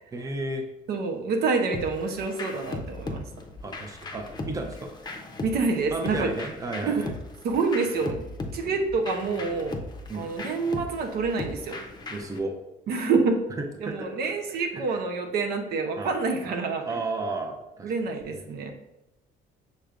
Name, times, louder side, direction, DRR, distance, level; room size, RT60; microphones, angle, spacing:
voice 1, 0.1-0.7 3.6-4.9 5.9-7.1 8.6-8.7 10.1-10.3 12.1-12.5 13.6-14.1 14.7-15.0 16.0-16.1 16.4-16.5 16.9-18.3, right 2 dB, 20° right, 3 dB, 0.6 m, -33 dB
voice 2, 0.9-3.3 5.4-6.3 6.8-7.0 7.4-8.2 8.5-9.8 10.1-11.8 12.9-13.4 13.8-17.0 17.8-18.7, right 4 dB, 70° right, 4 dB, 0.7 m, -27 dB
sound 1, 1.7-12.4, left 2 dB, 25° left, 0.6 m, -38 dB
6.5 x 3.2 x 2.4 m, 0.96 s
cardioid pair, 110°, 17 cm